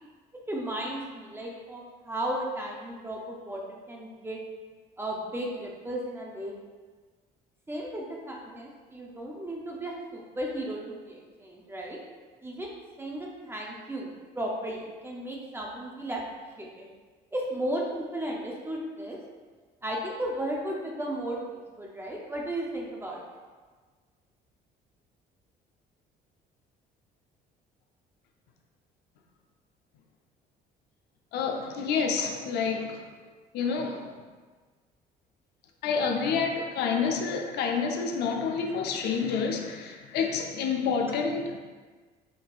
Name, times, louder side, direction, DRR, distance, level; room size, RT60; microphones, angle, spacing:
voice 1, 0.5-4.4 5.0-6.6 7.7-12.0 12.4-12.7 13.0-16.2 16.6-16.9 17.3-19.2 19.8-23.2 31.6-31.7 32.2-32.3 36.2-36.3 41.1-41.2, right 1 dB, 15° right, -2 dB, 0.5 m, -35 dB
voice 2, 31.3-33.1 33.5-34.1 35.8-41.6, left 5 dB, 75° left, 4 dB, 0.5 m, -28 dB
5.2 x 2.7 x 2.4 m, 1.4 s
cardioid pair, 110°, 17 cm